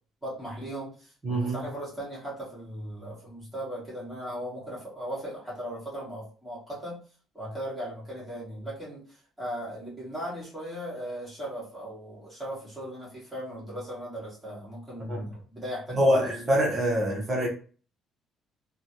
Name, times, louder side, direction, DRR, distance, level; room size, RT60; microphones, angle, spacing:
voice 1, 0.2-7.0 7.3-16.3, equal, ahead, -8 dB, 1.5 m, -38 dB
voice 2, 1.2-1.6 15.1-15.2 16.0-17.5, equal, 20° right, -2 dB, 1.1 m, -24 dB
3.1 x 2.4 x 2.7 m, 0.39 s
cardioid pair, 175°, 0 cm